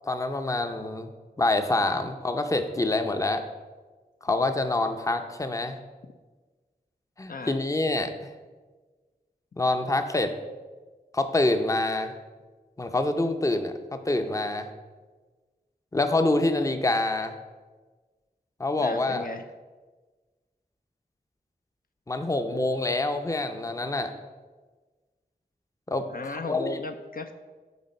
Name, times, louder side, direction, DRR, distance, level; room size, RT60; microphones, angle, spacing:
voice 1, 0.0-1.1 1.4-3.4 4.2-5.8 7.2-8.3 9.6-10.3 11.1-12.1 12.8-14.7 15.9-17.3 18.6-19.3 22.1-24.1 25.9-26.0 26.5-26.8, left 2 dB, 20° left, 7 dB, 0.6 m, -26 dB
voice 2, 18.8-19.4 26.1-27.3, left 3 dB, 60° left, 6 dB, 0.5 m, -35 dB
8.1 x 4.0 x 5.3 m, 1.3 s
wide cardioid pair, 60°, 16 cm